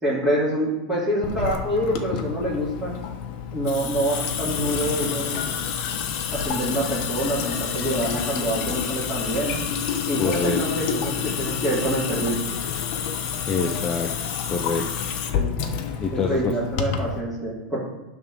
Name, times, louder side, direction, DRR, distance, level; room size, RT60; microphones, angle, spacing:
voice 1, 0.0-2.9 3.5-5.3 6.3-9.6 10.0-12.4 15.3-15.5 16.1-17.8, right 1 dB, 5° right, -12 dB, 2.9 m, -26 dB
Water tap faucet / Sink (filling or washing) / Drip, 1.2-17.2, left 7 dB, 45° left, 1.0 m, -28 dB
voice 2, 10.2-10.6 13.4-14.1 14.5-14.9 16.0-16.5, left 4 dB, 20° left, 2 dB, 0.7 m, -25 dB
10.5 x 3.7 x 6.2 m, 1.0 s
supercardioid pair, 150°, 5 cm